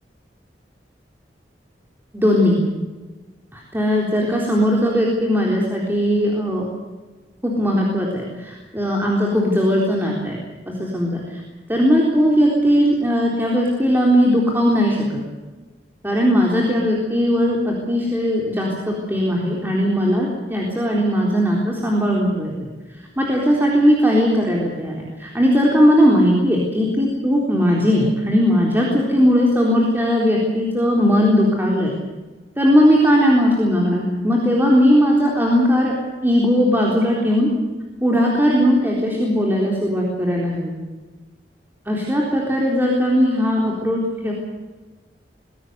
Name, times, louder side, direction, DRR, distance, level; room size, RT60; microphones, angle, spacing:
voice 1, 2.1-2.6 3.5-6.6 7.4-10.4 10.7-11.2 11.7-15.0 16.0-22.5 23.2-31.9 32.6-35.9 36.2-37.5 38.0-40.7 41.9-44.3, equal, 10° right, -2 dB, 3.9 m, -18 dB
23.0 x 17.0 x 8.2 m, 1.2 s
head